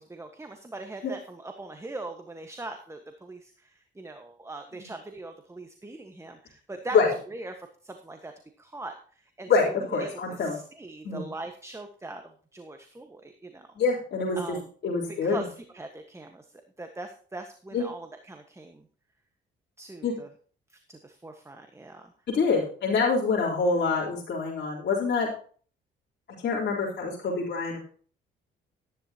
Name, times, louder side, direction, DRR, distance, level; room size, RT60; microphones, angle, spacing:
voice 1, 0.0-3.7 4.0-7.0 7.3-8.3 8.6-8.9 9.4-9.7 10.0-10.1 10.4-12.2 12.5-13.7 14.4-14.7 15.2-16.4 16.8-18.8 19.8-20.3 20.9-22.1, right 2 dB, 15° right, 6 dB, 1.4 m, -41 dB
voice 2, 9.5-10.6 11.0-11.2 13.8-14.6 14.8-15.4 17.7-17.8 20.0-20.1 22.3-25.3 26.4-27.8, left 4 dB, 60° left, -5 dB, 3.9 m, -26 dB
13.5 x 10.5 x 2.9 m, 0.43 s
cardioid pair, 90°, 20 cm